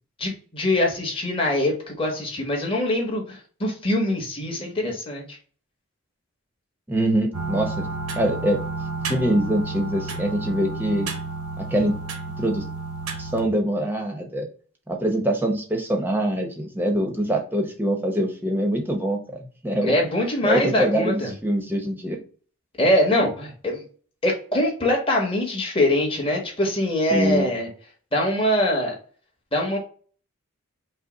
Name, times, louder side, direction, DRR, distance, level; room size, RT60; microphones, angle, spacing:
voice 1, 0.2-5.4 19.8-21.3 22.8-23.8 24.2-27.7 28.1-29.0 29.5-29.8, left 1 dB, 25° left, -1 dB, 1.2 m, -23 dB
voice 2, 6.9-7.9 8.2-8.6 9.1-11.1 11.6-11.9 12.4-12.6 13.2-14.5 14.9-19.9 20.4-22.2 27.1-27.5, right 1 dB, 10° right, 2 dB, 0.8 m, -24 dB
grandfather clock, 7.3-13.5, right 4 dB, 85° right, 0.9 m, -31 dB
5.4 x 2.1 x 4.0 m, 0.42 s
head